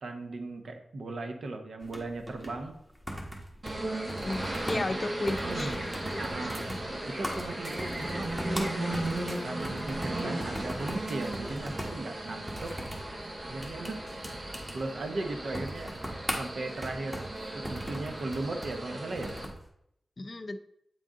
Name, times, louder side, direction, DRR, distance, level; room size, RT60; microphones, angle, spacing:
voice 1, 0.0-2.8 4.7-5.0 5.4-5.8 6.2-6.8 7.1-8.4 9.4-12.8 13.5-14.0 14.7-16.0 16.3-17.3 17.5-19.4, right 2 dB, 80° right, 5 dB, 0.8 m, -37 dB
sound 1, 1.8-19.6, equal, 10° right, 1.4 m, -40 dB
sound 2, 3.6-19.5, right 1 dB, 60° right, 1.5 m, -36 dB
voice 2, 4.2-5.8 6.1-6.8 20.2-20.6, left 2 dB, 45° left, 9 dB, 0.4 m, -34 dB
sound 3, 5.9-6.8 7.1-8.0 8.9-9.4 10.2-10.5 11.1-11.3 12.6-13.0, right 1 dB, 35° right, 1.0 m, -50 dB
8.2 x 3.7 x 3.7 m, 0.76 s
wide cardioid pair, 85°, 0 cm